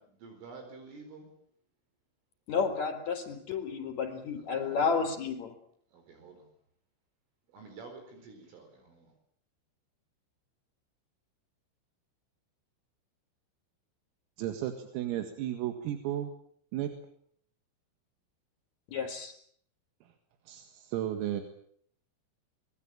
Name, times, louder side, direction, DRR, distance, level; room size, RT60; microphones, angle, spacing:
voice 1, 0.2-1.3 4.7-5.0 5.9-6.5 7.5-9.1, right 4 dB, 70° right, 5 dB, 7.1 m, -49 dB
voice 2, 2.5-5.5 18.9-19.3, left 5 dB, 35° left, 8 dB, 5.1 m, -31 dB
voice 3, 14.4-16.3 16.7-16.9 20.5-21.4, right 12 dB, 85° right, 7 dB, 4.5 m, -34 dB
24.5 x 21.0 x 8.9 m, 0.63 s
omnidirectional pair, 6.0 m